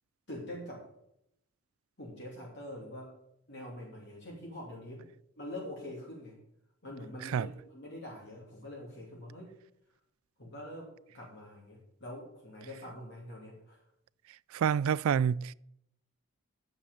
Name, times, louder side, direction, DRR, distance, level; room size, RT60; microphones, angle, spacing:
voice 1, 0.3-0.8 2.0-3.1 3.5-5.0 5.4-6.4 6.8-9.6 10.4-13.8, left 1 dB, 50° left, 3.0 m, -45 dB
voice 2, 14.5-15.5, right 7 dB, 75° right, 0.3 m, -28 dB
8.9 x 6.9 x 7.8 m
head